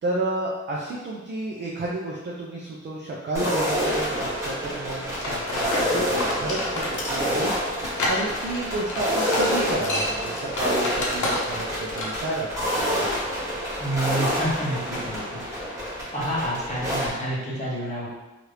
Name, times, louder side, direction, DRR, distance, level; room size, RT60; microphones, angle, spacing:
voice 1, 0.0-7.5 8.1-12.5 12.8-13.1, right 2 dB, 40° right, -3 dB, 0.4 m, -31 dB
sound 1, 3.3-17.1, equal, 10° right, 0.9 m, -28 dB
sound 2, 5.2-11.7 12.0-12.2, left 2 dB, 80° left, 0.7 m, -30 dB
voice 2, 13.8-15.4 16.1-18.1, right 1 dB, 25° left, -7 dB, 0.9 m, -28 dB
2.8 x 2.4 x 3.2 m, 1.1 s
wide cardioid pair, 175°, 29 cm